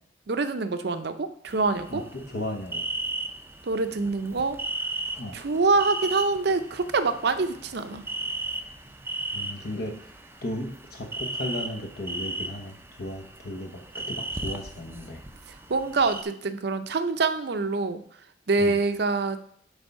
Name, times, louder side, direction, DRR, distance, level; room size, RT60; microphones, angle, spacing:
voice 1, 0.3-2.0 3.7-4.6 5.3-8.0 15.7-18.0 18.5-19.4, right 3 dB, 65° right, 9 dB, 0.6 m, -25 dB
sound 1, 1.5-16.2, right 2 dB, 15° right, 0.5 m, -36 dB
voice 2, 1.9-2.8 5.2-5.4 9.3-10.1 10.4-15.2 18.6-18.8, left 1 dB, 60° left, 3 dB, 1.0 m, -35 dB
8.1 x 3.5 x 5.4 m, 0.64 s
head